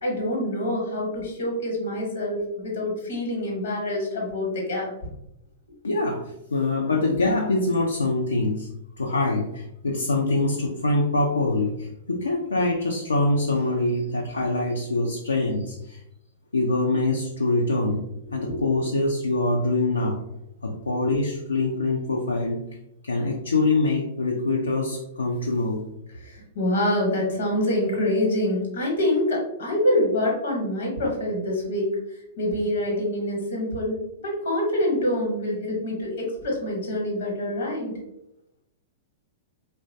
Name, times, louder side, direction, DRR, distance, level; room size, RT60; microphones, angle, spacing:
voice 1, 0.0-4.9 18.4-18.7 20.8-20.9 26.2-31.9 32.4-37.9, left 1 dB, 70° left, -1 dB, 1.0 m, -26 dB
voice 2, 5.8-8.7 9.0-16.0 16.5-18.0 18.3-20.2 20.6-22.6 23.0-25.8, left 2 dB, 85° left, 1 dB, 0.3 m, -24 dB
3.0 x 2.1 x 2.6 m, 0.84 s
figure-of-eight pair, 105°, 0 cm